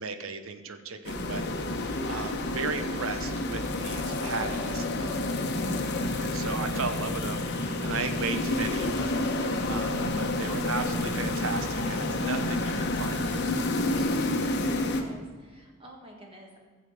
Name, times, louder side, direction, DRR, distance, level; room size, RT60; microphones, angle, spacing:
voice 1, 0.0-1.4 1.8-5.4 6.2-14.1, right 4 dB, 65° right, 9 dB, 0.9 m, -36 dB
sound 1, 1.0-15.0, left 2 dB, 50° left, 1.0 m, -29 dB
voice 2, 14.5-16.6, right 1 dB, 25° right, 0 dB, 1.5 m, -50 dB
14.5 x 7.3 x 4.9 m, 1.5 s
head